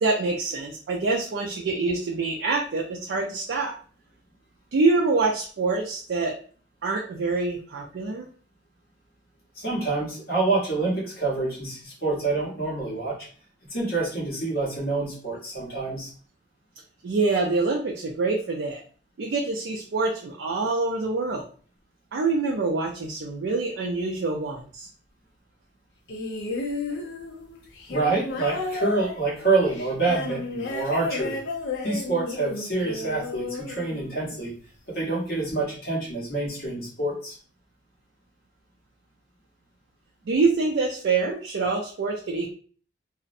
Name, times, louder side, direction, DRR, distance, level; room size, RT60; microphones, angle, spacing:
voice 1, 0.0-3.7 4.7-6.4 6.8-8.3 17.0-18.8 19.2-21.5 22.1-24.9 40.3-42.5, right 3 dB, 75° right, -1 dB, 0.4 m, -25 dB
voice 2, 9.6-13.2 13.7-16.1 27.9-31.4 31.8-34.5 34.9-37.3, right 3 dB, 55° left, -5 dB, 1.1 m, -27 dB
sound 1, 26.1-34.5 35.5-35.6, left 3 dB, 80° left, 0.5 m, -33 dB
2.5 x 2.0 x 2.5 m, 0.42 s
head